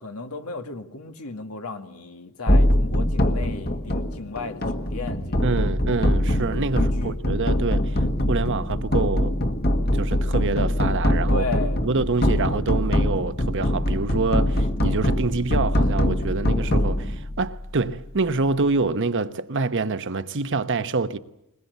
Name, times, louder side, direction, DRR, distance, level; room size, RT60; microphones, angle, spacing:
voice 1, 0.0-5.8 6.7-7.2 11.3-11.8, left 3 dB, 90° left, 2.1 m, -34 dB
sound 1, 2.5-17.8, left 1 dB, 45° left, 1.8 m, -23 dB
voice 2, 5.4-8.0 8.3-9.4 9.9-11.4 11.8-21.2, right 3 dB, 60° right, 1.0 m, -26 dB
22.5 x 20.5 x 8.1 m
head